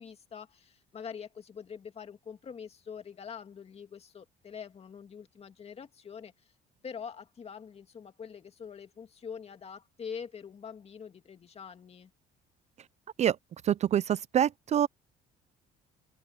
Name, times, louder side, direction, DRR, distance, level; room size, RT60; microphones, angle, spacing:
voice 1, 0.0-6.5 6.8-12.1, left 7 dB, 35° left, 2.3 m, -44 dB
voice 2, 13.6-14.9, right 10 dB, 40° right, 0.4 m, -26 dB
open air
cardioid pair, 110°, 17 cm